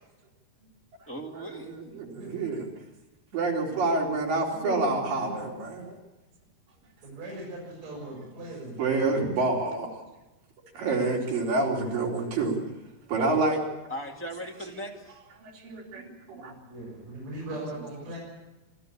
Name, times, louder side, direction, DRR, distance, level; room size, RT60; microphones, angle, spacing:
voice 1, 1.1-1.8 13.9-15.2, equal, 5° left, 0 dB, 0.9 m, -38 dB
voice 2, 1.6-2.7 3.3-6.0 8.8-10.0 10.7-12.6 13.1-13.6 15.4-16.5, right 3 dB, 65° right, -2 dB, 5.5 m, -28 dB
voice 3, 4.5-5.5 7.0-9.0 16.7-18.2, right 1 dB, 45° right, -5 dB, 7.7 m, -39 dB
26.0 x 13.5 x 8.6 m, 1.0 s
omnidirectional pair, 4.4 m